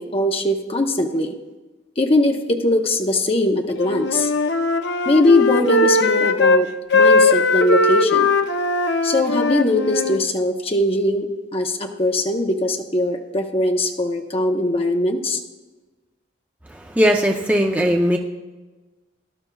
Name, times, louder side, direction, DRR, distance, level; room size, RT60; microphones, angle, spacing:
voice 1, 0.0-1.3 2.0-4.3 5.1-8.3 9.0-11.3 11.5-15.4, left 1 dB, 30° left, 3 dB, 0.8 m, -20 dB
Wind instrument woodwind instrument, 3.8-6.6 6.9-10.2, left 3 dB, 60° left, 0.6 m, -18 dB
voice 2, 16.7-18.2, equal, 10° right, 1 dB, 0.6 m, -19 dB
17.5 x 12.0 x 2.3 m, 1.2 s
head